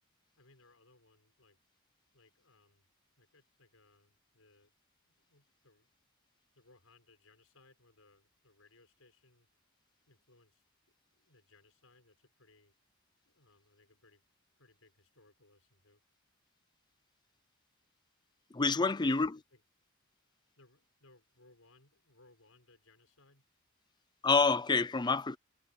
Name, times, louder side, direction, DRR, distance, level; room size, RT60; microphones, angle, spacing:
voice 1, 0.4-1.6 2.1-2.9 3.2-4.7 5.0-6.0 6.5-9.5 10.1-10.6 11.1-12.7 13.2-14.2 14.6-16.0 18.8-19.6 20.6-23.4, left 2 dB, 85° left, 6.4 m, -65 dB
voice 2, 18.5-19.4 24.2-25.4, left 4 dB, 20° left, 0.5 m, -27 dB
head